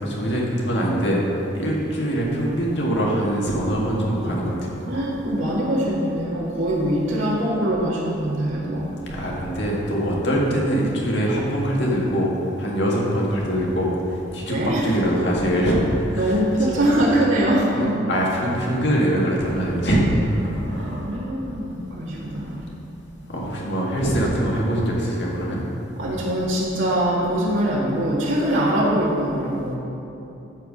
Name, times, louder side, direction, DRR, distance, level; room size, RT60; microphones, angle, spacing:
voice 1, 0.0-1.2 1.5-4.8 9.1-12.3 12.6-15.8 16.1-16.4 16.7-16.9 17.7-20.0 20.8-20.9 23.3-25.6, equal, 65° left, -3 dB, 1.8 m, -23 dB
voice 2, 4.8-8.9 14.5-15.0 16.1-17.9 20.3-22.6 26.0-29.7, right 1 dB, 90° right, -7 dB, 1.9 m, -23 dB
14.0 x 4.7 x 5.3 m, 2.9 s
head